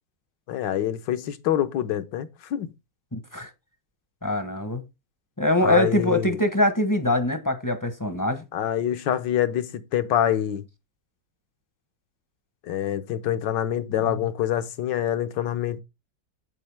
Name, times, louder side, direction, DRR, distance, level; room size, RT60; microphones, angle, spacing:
voice 1, 0.5-2.7 5.6-6.4 8.5-10.6 12.6-15.8, left 10 dB, 80° left, 1.5 m, -26 dB
voice 2, 3.1-3.5 4.2-4.8 5.4-8.4, left 1 dB, 15° left, 0.6 m, -23 dB
8.1 x 7.5 x 3.4 m
omnidirectional pair, 1.9 m